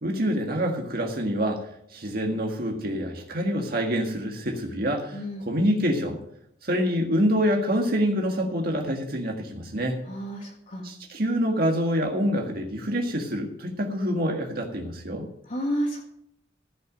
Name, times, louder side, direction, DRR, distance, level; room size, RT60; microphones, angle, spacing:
voice 1, 0.0-6.2 6.6-10.0 10.8-15.3, equal, 55° right, 2 dB, 1.7 m, -26 dB
voice 2, 5.1-5.4 10.1-10.9 15.5-16.0, equal, 50° left, -2 dB, 2.0 m, -30 dB
15.0 x 6.0 x 8.9 m, 0.73 s
head